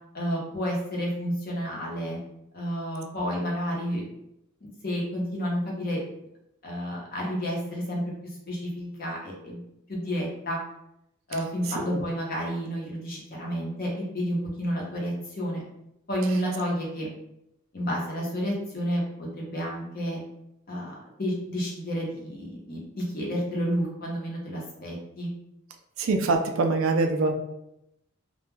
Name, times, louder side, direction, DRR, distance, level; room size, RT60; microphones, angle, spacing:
voice 1, 0.1-2.2 2.5-4.1 4.6-6.0 6.6-8.0 8.5-9.6 9.9-10.6 11.3-15.6 16.1-17.1 17.7-20.2 20.7-25.3, equal, 45° left, -2 dB, 0.7 m, -30 dB
voice 2, 26.0-27.3, right 3 dB, 70° right, 5 dB, 0.4 m, -24 dB
2.2 x 2.1 x 3.2 m, 0.82 s
head